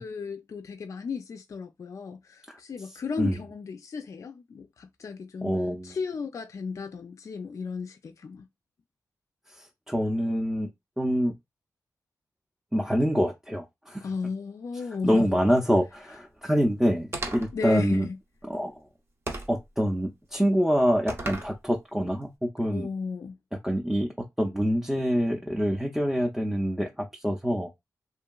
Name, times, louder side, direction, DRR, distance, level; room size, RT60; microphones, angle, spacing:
voice 1, 0.0-5.6 5.8-8.5 14.0-15.4 17.5-18.2 22.7-23.4, left 5 dB, 55° left, 0.3 m, -35 dB
voice 2, 5.4-6.0 9.5-10.7 11.0-11.3 12.7-14.1 15.0-18.1 18.4-18.7 19.5-22.9 23.6-24.1 24.4-27.7, equal, 5° right, 0.5 m, -26 dB
sound 1, 17.1-17.6 19.3-19.6 21.1-21.6, right 2 dB, 40° right, 0.7 m, -34 dB
2.8 x 2.5 x 2.3 m
cardioid pair, 75°, 6 cm